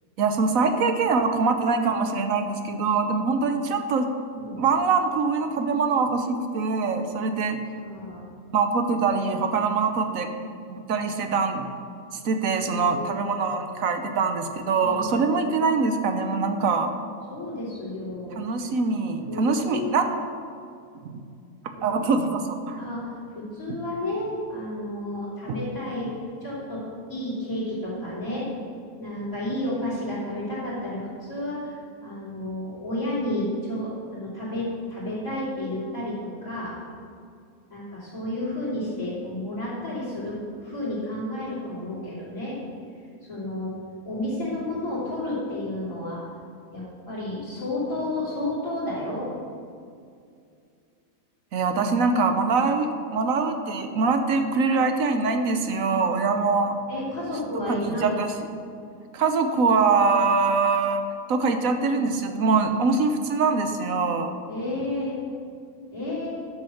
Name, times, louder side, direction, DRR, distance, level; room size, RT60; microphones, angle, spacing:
voice 1, 0.2-4.1 4.6-7.6 8.5-10.3 10.7-11.7 12.2-16.9 18.4-20.1 21.0-21.2 21.8-22.8 23.7-23.8 51.5-56.8 57.7-58.3 59.1-61.0 61.3-64.4, right 4 dB, 75° right, 7 dB, 1.3 m, -23 dB
voice 2, 7.8-8.3 11.0-11.1 12.5-13.3 14.8-15.1 17.3-18.5 19.3-19.9 21.7-22.1 22.8-26.1 26.4-26.8 27.1-28.5 29.0-31.7 32.0-36.2 36.4-36.7 37.7-42.6 43.3-43.7 44.0-46.2 46.7-49.3 56.9-58.2 64.5-65.2 65.9-66.3, left 1 dB, 75° left, -13 dB, 3.9 m, -31 dB
11.5 x 6.4 x 7.1 m, 2.4 s
omnidirectional pair, 1.5 m